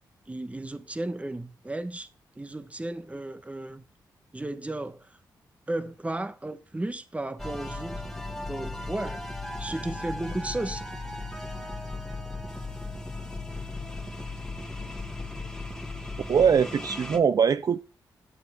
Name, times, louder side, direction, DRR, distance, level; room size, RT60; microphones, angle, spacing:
voice 1, 0.3-2.1 2.3-3.8 4.3-5.2 5.7-9.2 9.6-10.8, right 2 dB, 15° right, 1.1 m, -34 dB
sound 1, 7.4-17.2, left 2 dB, 5° left, 1.8 m, -36 dB
voice 2, 16.3-17.9, right 7 dB, 55° right, 0.4 m, -22 dB
10.5 x 9.1 x 3.6 m
cardioid pair, 65°, 8 cm